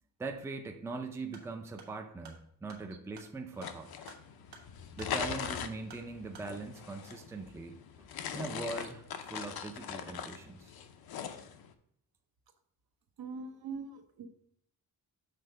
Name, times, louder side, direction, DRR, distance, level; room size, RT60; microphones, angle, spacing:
voice 1, 0.2-3.9 5.0-8.1 8.3-10.7, right 3 dB, 5° right, 4 dB, 0.4 m, -41 dB
sound 1, 1.3-6.5, right 5 dB, 90° right, 1.3 m, -56 dB
sound 2, 3.5-11.7, left 8 dB, 70° left, 0.7 m, -41 dB
voice 2, 13.2-14.3, right 4 dB, 70° right, 7 dB, 0.8 m, -42 dB
6.8 x 3.7 x 5.2 m, 0.71 s
wide cardioid pair, 165°, 38 cm